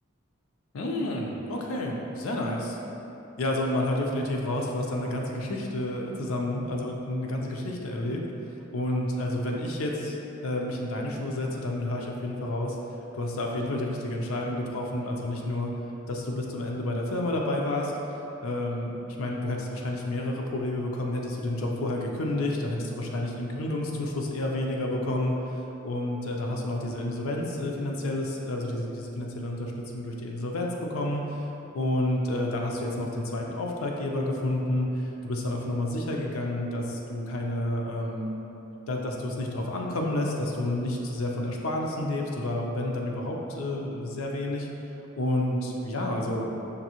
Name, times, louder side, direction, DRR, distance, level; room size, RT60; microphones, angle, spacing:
voice 1, 0.7-2.8 3.4-8.2 8.7-10.2 10.4-12.8 13.1-15.7 16.1-31.5 31.7-38.3 38.9-44.7 45.2-46.5, left 1 dB, 80° left, -1 dB, 0.5 m, -30 dB
5.2 x 2.6 x 2.9 m, 2.9 s
head